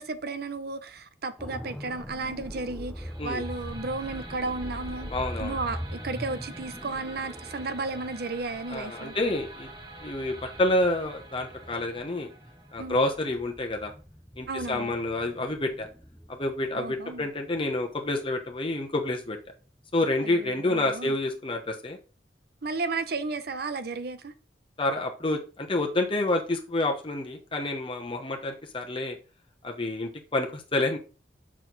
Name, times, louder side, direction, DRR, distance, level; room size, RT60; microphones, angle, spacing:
voice 1, 0.0-5.1 5.4-9.1 12.8-13.0 14.5-14.9 16.7-17.3 20.2-21.1 22.6-24.3, right 3 dB, 65° right, 0.8 m, -33 dB
sound 1, 1.4-19.3 19.6-19.8, equal, 5° left, 0.6 m, -42 dB
sound 2, 3.0-14.0, right 2 dB, 25° right, 1.3 m, -47 dB
voice 2, 5.1-5.6 8.7-9.7 10.0-12.3 12.7-13.9 14.4-15.9 16.3-19.4 19.9-22.0 24.8-29.2 29.6-31.0, left 2 dB, 30° left, 1.0 m, -28 dB
6.5 x 6.2 x 4.0 m
head